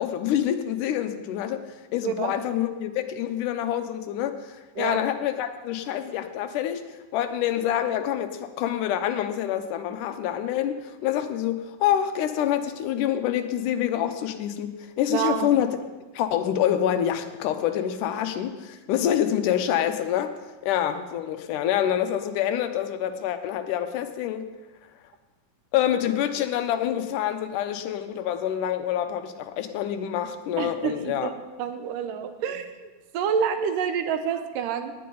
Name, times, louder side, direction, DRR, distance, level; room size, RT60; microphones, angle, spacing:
voice 1, 0.0-1.6 1.9-6.8 7.1-15.7 16.1-20.3 20.6-24.5 25.7-31.3, left 10 dB, 80° left, 8 dB, 2.1 m, -26 dB
voice 2, 2.0-2.3 4.8-5.0 15.1-15.6 30.6-31.3 31.6-34.9, right 7 dB, 85° right, 8 dB, 2.4 m, -28 dB
17.5 x 9.4 x 3.9 m, 1.2 s
omnidirectional pair, 3.8 m